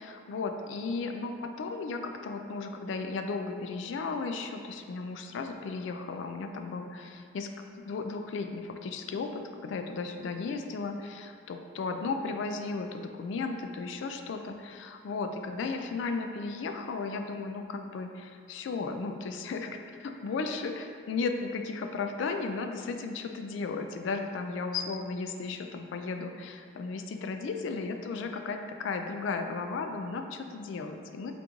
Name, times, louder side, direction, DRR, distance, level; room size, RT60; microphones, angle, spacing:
voice 1, 0.0-7.5 7.9-31.3, left 4 dB, 65° left, 5 dB, 0.3 m, -35 dB
3.8 x 3.0 x 3.5 m, 2.2 s
head